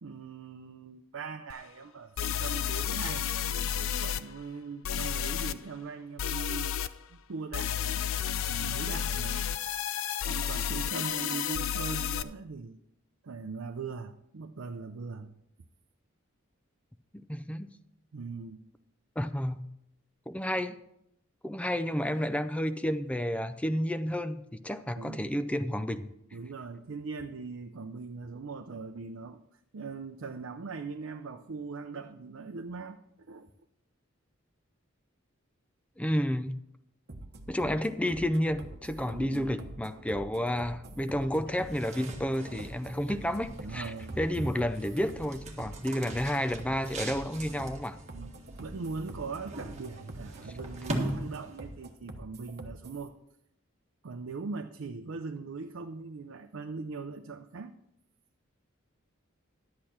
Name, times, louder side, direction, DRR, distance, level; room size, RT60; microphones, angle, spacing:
voice 1, 0.0-3.3 3.7-6.8 7.1-8.0 8.5-9.5 10.3-12.8 13.2-15.4 18.1-18.6 24.9-25.2 26.3-29.4 29.7-33.0 33.3-33.5 39.1-39.5 43.6-44.6 48.1-48.3 48.6-53.1 54.0-57.7, right 4 dB, 70° right, 5 dB, 0.6 m, -40 dB
sound 1, 1.5-1.6 2.2-4.2 4.8-5.5 6.2-6.9 7.5-12.2, left 9 dB, 70° left, 0.5 m, -31 dB
voice 2, 17.1-17.7 19.2-19.7 20.3-20.8 21.4-26.1 36.0-36.6 37.5-48.0, equal, 5° left, 10 dB, 0.4 m, -31 dB
sound 2, 37.1-53.1, right 2 dB, 50° right, 1.1 m, -45 dB
sound 3, 41.5-51.8, right 1 dB, 35° right, 1.6 m, -41 dB
11.5 x 8.5 x 4.3 m, 0.78 s
head